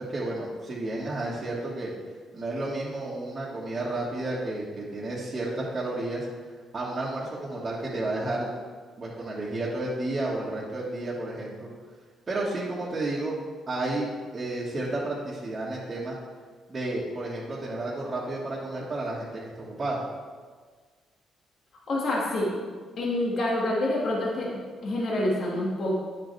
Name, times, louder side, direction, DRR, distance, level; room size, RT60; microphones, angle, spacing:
voice 1, 0.0-1.9 2.3-6.3 6.7-8.5 9.0-11.7 12.3-13.4 13.7-16.2 16.7-20.0, right 2 dB, 35° right, -9 dB, 1.7 m, -31 dB
voice 2, 21.9-22.5 23.0-25.9, left 1 dB, 55° left, -4 dB, 2.0 m, -27 dB
9.7 x 6.6 x 3.4 m, 1.5 s
cardioid pair, 90°, 0 cm